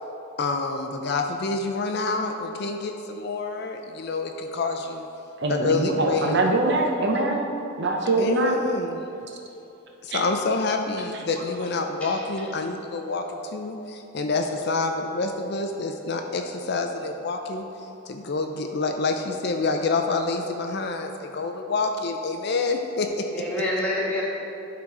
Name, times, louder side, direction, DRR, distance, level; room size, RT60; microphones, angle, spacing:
voice 1, 0.4-5.1 5.5-6.4 8.2-9.0 10.0-17.7 18.1-23.3, left 3 dB, 50° left, 4 dB, 0.5 m, -27 dB
voice 2, 5.4-7.4 7.8-8.6 10.1-10.2, right 2 dB, 55° right, 1 dB, 0.8 m, -23 dB
voice 3, 12.0-12.5 23.3-24.2, left 1 dB, 5° left, -7 dB, 1.6 m, -28 dB
11.5 x 4.0 x 4.8 m, 2.8 s
head